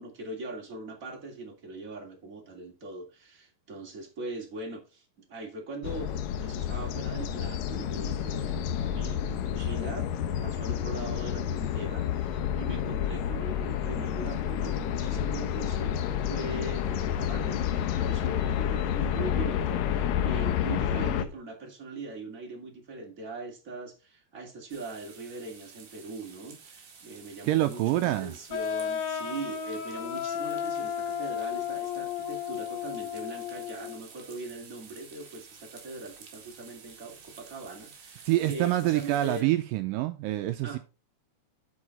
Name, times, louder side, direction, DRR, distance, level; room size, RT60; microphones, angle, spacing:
voice 1, 0.0-6.1 6.4-10.1 10.4-39.5 40.6-40.8, right 3 dB, 25° right, 2.5 m, -41 dB
sound 1, 5.8-21.2, left 9 dB, 90° left, 1.6 m, -30 dB
sound 2, 24.7-39.4, right 6 dB, 60° right, 3.4 m, -51 dB
voice 2, 27.4-28.3 38.3-40.8, right 15 dB, 85° right, 2.0 m, -26 dB
sound 3, 28.5-34.0, left 8 dB, 70° left, 3.1 m, -33 dB
11.0 x 4.8 x 4.2 m
omnidirectional pair, 4.4 m